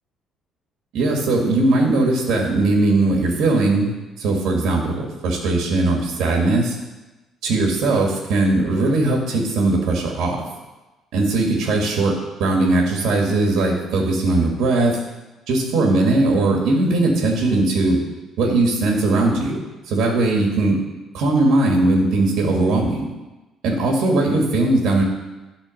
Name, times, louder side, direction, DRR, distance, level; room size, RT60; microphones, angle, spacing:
voice 1, 0.9-3.9 4.2-6.8 7.4-10.4 11.1-15.0 15.5-18.0 18.4-19.6 19.9-20.8 21.1-23.1 23.6-25.0, right 2 dB, 70° right, 0 dB, 1.7 m, -19 dB
12.0 x 4.2 x 6.4 m, 1.1 s
cardioid pair, 155°, 0 cm